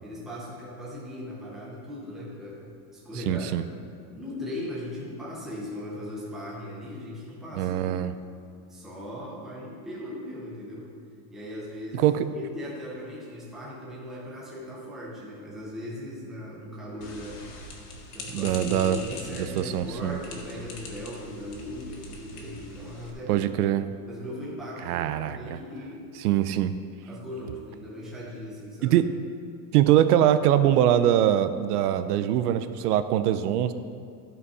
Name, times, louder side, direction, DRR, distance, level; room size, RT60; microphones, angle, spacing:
voice 1, 0.0-3.6 4.1-8.0 8.6-10.9 11.3-17.5 18.1-23.5 24.1-26.1 27.0-29.0, left 1 dB, ahead, -6 dB, 0.5 m, -38 dB
voice 2, 3.2-3.6 7.6-8.1 11.9-12.3 18.3-19.0 19.3-20.2 23.3-23.9 24.9-25.6 26.2-26.7 28.8-29.1 29.7-33.7, right 11 dB, 70° right, 11 dB, 0.6 m, -23 dB
sound 1, 17.0-23.1, left 2 dB, 70° left, 1.8 m, -42 dB
12.5 x 5.3 x 4.8 m, 2.3 s
supercardioid pair, 180°, 48 cm